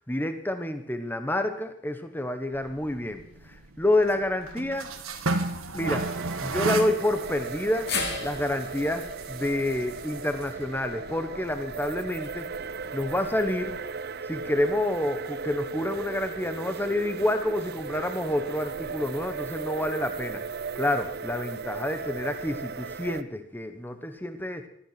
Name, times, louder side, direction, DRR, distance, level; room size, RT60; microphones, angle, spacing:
voice 1, 0.1-3.2 3.5-4.9 5.7-6.1 6.4-7.9 8.2-12.5 12.9-13.8 14.3-20.4 20.7-24.6, left 1 dB, 10° left, 8 dB, 1.2 m, -28 dB
sound 1, 2.5-13.8, right 2 dB, 90° right, 1.7 m, -36 dB
sound 2, 5.8-23.2, right 5 dB, 50° right, 0.5 m, -36 dB
sound 3, 7.9-12.1 12.5-12.6 13.8-13.9, left 4 dB, 50° left, 3.3 m, -37 dB
16.0 x 13.5 x 5.9 m, 0.69 s
head